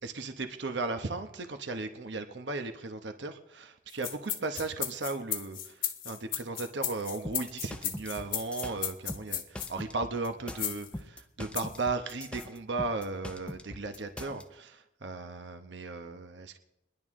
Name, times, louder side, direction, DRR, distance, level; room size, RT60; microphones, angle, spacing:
voice 1, 0.0-16.6, right 3 dB, 75° right, 7 dB, 1.0 m, -36 dB
sound 1, 3.9-9.7 10.6-10.9 11.5-11.8 12.4-12.5, left 10 dB, 45° left, 1.1 m, -35 dB
sound 2, 7.2-14.4, left 1 dB, 5° left, 0.6 m, -42 dB
26.0 x 11.0 x 3.7 m, 0.91 s
head